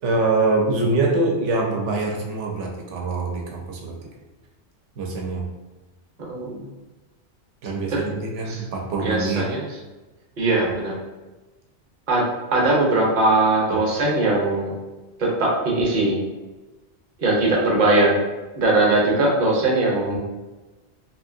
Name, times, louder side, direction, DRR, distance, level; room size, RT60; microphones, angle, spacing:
voice 1, 0.0-4.0 5.0-5.5 7.6-9.5 13.7-13.9 20.1-20.2, right 3 dB, 80° right, 1 dB, 1.0 m, -24 dB
voice 2, 6.3-6.6 8.5-8.6 9.0-9.6 10.4-10.9 12.1-12.2 12.5-14.7 15.2-16.2 17.2-18.1 18.6-20.2, right 2 dB, 45° right, -3 dB, 0.8 m, -20 dB
3.0 x 2.6 x 2.5 m, 1.2 s
omnidirectional pair, 1.2 m